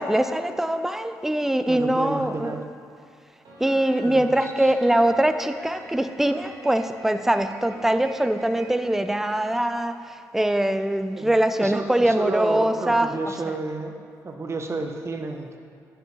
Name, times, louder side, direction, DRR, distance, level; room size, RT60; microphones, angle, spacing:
voice 1, 0.0-2.6 3.6-13.1, right 1 dB, 5° right, 9 dB, 0.4 m, -23 dB
voice 2, 1.7-2.6 4.0-4.7 11.1-11.3 11.6-13.9 14.2-15.6, right 3 dB, 40° right, 4 dB, 0.8 m, -31 dB
Piano, 3.4-10.0, right 2 dB, 65° right, 1.6 m, -46 dB
10.0 x 5.0 x 3.2 m, 2.3 s
supercardioid pair, 55°, 7 cm